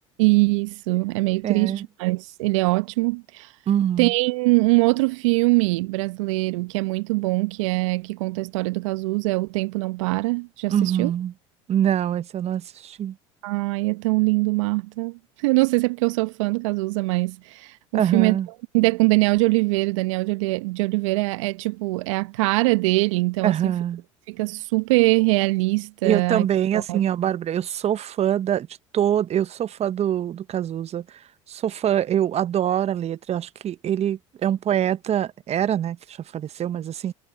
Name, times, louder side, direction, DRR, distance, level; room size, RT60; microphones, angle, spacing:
voice 1, 0.2-3.5 4.0-11.1 13.4-18.4 18.7-23.7 24.3-26.5 26.7-27.0, right 24 dB, 70° right, 1.1 m, -22 dB
voice 2, 1.4-1.8 3.7-4.1 10.7-11.3 11.7-13.1 17.9-18.5 23.4-24.0 26.0-28.7 28.9-31.0 31.5-37.1, right 10 dB, 40° right, 1.0 m, -24 dB
hypercardioid pair, 70°, 16 cm